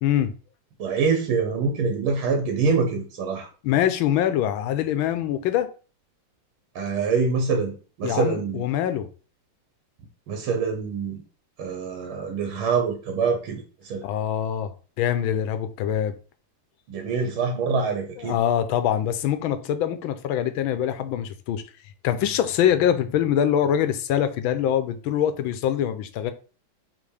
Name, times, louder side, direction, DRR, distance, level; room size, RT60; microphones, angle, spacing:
voice 1, 0.0-0.3 3.6-5.7 8.0-9.1 14.0-14.7 15.0-16.1 18.2-21.6 22.0-26.3, left 10 dB, 80° left, 1.5 m, -24 dB
voice 2, 0.8-3.5 6.8-7.7 8.0-8.7 10.3-11.2 11.6-14.0 16.9-18.4, right 5 dB, 85° right, 2.0 m, -25 dB
6.0 x 3.5 x 4.9 m
omnidirectional pair, 2.2 m